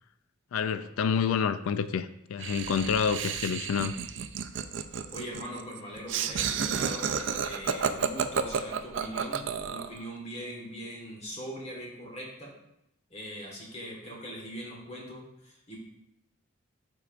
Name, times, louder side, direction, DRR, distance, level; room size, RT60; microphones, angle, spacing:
voice 1, 0.5-4.0, left 6 dB, 85° left, 0.3 m, -28 dB
Laughter, 2.4-10.0, right 7 dB, 60° right, 0.4 m, -31 dB
voice 2, 5.1-12.5 13.1-15.8, equal, 30° left, 1.5 m, -41 dB
12.0 x 4.6 x 2.5 m
head